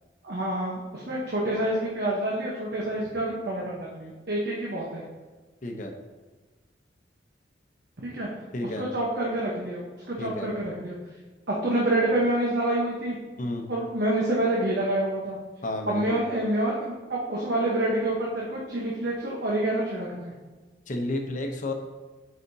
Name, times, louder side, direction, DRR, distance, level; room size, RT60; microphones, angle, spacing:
voice 1, 0.2-5.0 8.0-8.3 8.8-11.0 11.5-13.2 13.7-15.4 15.9-20.3, right 1 dB, 65° right, -4 dB, 1.0 m, -27 dB
voice 2, 5.6-5.9 8.5-8.8 10.2-10.5 13.4-13.7 15.6-16.2 20.9-21.7, left 1 dB, 45° left, 4 dB, 0.8 m, -31 dB
8.3 x 4.9 x 2.8 m, 1.3 s
head